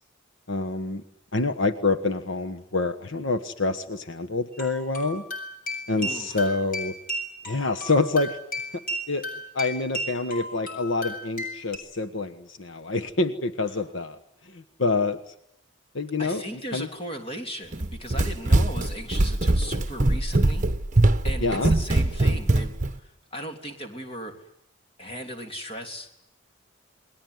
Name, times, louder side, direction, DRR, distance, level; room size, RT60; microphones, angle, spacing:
voice 1, 0.5-1.0 1.3-5.2 5.9-6.9 7.5-8.4 9.1-9.2 9.5-14.2 14.5-15.2 15.9-16.4 16.7-16.9 21.4-21.7, left 3 dB, 70° left, 7 dB, 1.4 m, -26 dB
sound 1, 4.5-11.8, equal, 40° left, 7.6 m, -35 dB
voice 2, 5.9-6.5 13.7-13.8 16.2-20.7 21.2-24.5 25.0-26.1, equal, 25° left, 4 dB, 3.3 m, -37 dB
Run, 17.7-22.9, right 2 dB, 35° right, 1.2 m, -22 dB
28.5 x 21.5 x 9.6 m, 0.77 s
head